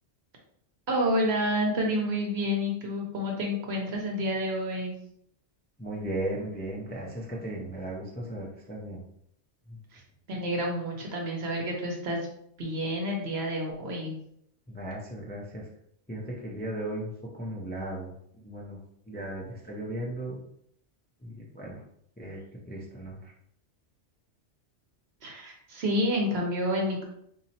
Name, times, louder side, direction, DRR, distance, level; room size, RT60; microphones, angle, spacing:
voice 1, 0.9-4.9 9.9-10.0 10.3-12.2 12.6-14.1 25.2-27.0, equal, 65° right, 0 dB, 1.1 m, -29 dB
voice 2, 5.8-9.0 9.7-9.8 14.7-15.7 16.1-17.1 17.4-18.1 18.4-18.8 19.1-20.4 21.2-21.8 22.2-22.4 22.7-23.3, right 1 dB, 15° left, -3 dB, 0.4 m, -36 dB
4.1 x 2.7 x 2.8 m, 0.72 s
omnidirectional pair, 1.2 m